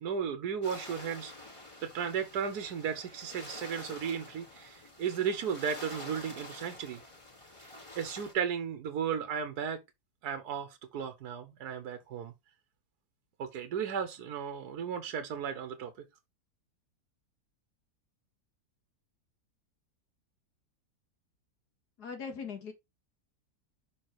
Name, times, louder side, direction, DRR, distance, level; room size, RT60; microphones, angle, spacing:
voice 1, 0.0-1.3 1.8-7.0 7.6-7.7 7.9-9.8 10.2-12.3 13.4-15.9, right 7 dB, 75° right, 1.4 m, -35 dB
sound 1, 0.6-8.3, left 2 dB, 20° left, 2.0 m, -48 dB
voice 2, 22.0-22.7, left 5 dB, 70° left, 2.3 m, -40 dB
5.6 x 4.4 x 4.6 m
omnidirectional pair, 1.7 m